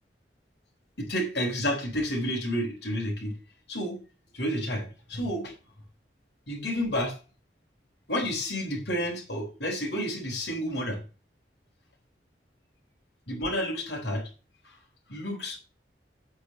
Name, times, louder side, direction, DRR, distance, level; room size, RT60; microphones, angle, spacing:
voice 1, 1.0-3.3 3.7-4.0 4.3-5.5 6.5-7.2 8.1-11.0 13.3-14.3 14.6-14.7 15.1-15.6, equal, 70° left, -1 dB, 5.0 m, -30 dB
9.1 x 6.6 x 7.5 m, 0.33 s
head